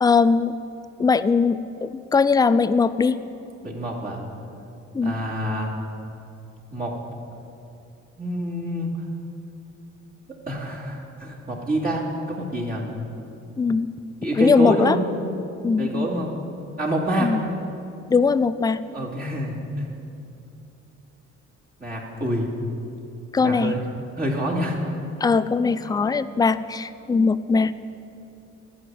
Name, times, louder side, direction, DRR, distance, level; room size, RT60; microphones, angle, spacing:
voice 1, 0.0-0.5 1.0-3.2 4.9-5.2 13.6-13.9 14.4-15.0 15.6-16.1 17.2-17.4 18.1-18.8 23.3-23.8 25.2-27.7, left 5 dB, 10° left, 15 dB, 0.3 m, -20 dB
voice 2, 3.6-4.2 5.0-5.7 6.7-7.0 8.2-8.9 10.5-12.8 14.2-15.0 15.8-16.3 16.8-17.3 18.9-19.8 21.8-22.5 23.4-23.8 24.2-24.8, right 1 dB, 25° right, -5 dB, 2.4 m, -27 dB
11.5 x 5.0 x 8.6 m, 2.7 s
hypercardioid pair, 45°, 37 cm